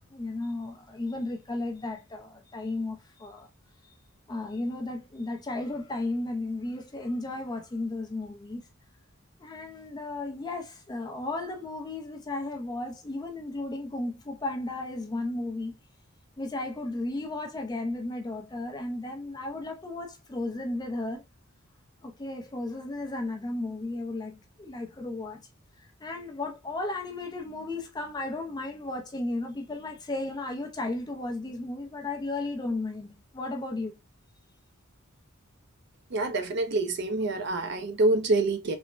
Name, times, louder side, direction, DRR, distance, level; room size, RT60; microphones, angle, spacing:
voice 1, 0.1-3.5 4.3-8.7 9.4-15.7 16.4-21.2 22.0-25.4 25.8-34.0, left 2 dB, 20° left, 0.3 m, -34 dB
voice 2, 36.1-38.7, right 2 dB, 50° right, 0.4 m, -26 dB
3.1 x 2.0 x 2.4 m
head